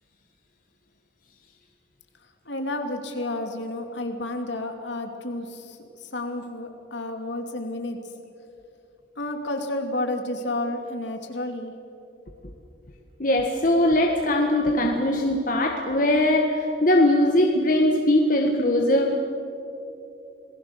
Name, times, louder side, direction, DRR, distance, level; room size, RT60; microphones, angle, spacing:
voice 1, 2.4-8.0 9.2-11.7, left 1 dB, 65° left, 4 dB, 2.7 m, -31 dB
voice 2, 13.2-19.2, left 1 dB, 45° left, 2 dB, 1.6 m, -21 dB
28.0 x 20.0 x 6.8 m, 2.8 s
head